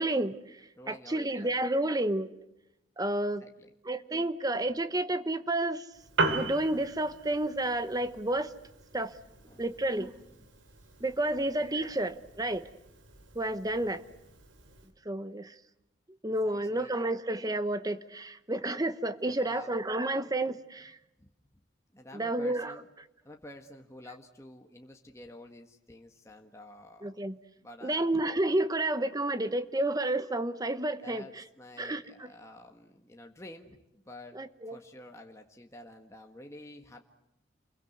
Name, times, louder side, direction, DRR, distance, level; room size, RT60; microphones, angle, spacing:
voice 1, 0.0-2.3 3.0-3.4 3.8-5.9 6.3-8.5 8.9-9.1 9.6-10.1 11.0-12.7 13.3-14.0 15.0-15.6 16.2-21.0 22.1-22.7 27.0-27.4 27.8-31.4 31.8-32.3 34.3-34.8, right 1 dB, 20° right, 12 dB, 1.0 m, -30 dB
voice 2, 0.8-1.5 3.4-3.7 9.4-9.8 10.4-11.0 11.4-11.5 16.4-17.0 19.2-19.7 21.2-21.3 21.9-22.9 23.2-27.2 27.6-28.1 31.0-37.0, left 1 dB, 15° left, 3 dB, 1.6 m, -50 dB
Piano, 5.9-14.9, right 2 dB, 85° right, 3.7 m, -38 dB
29.0 x 22.5 x 8.0 m, 0.88 s
head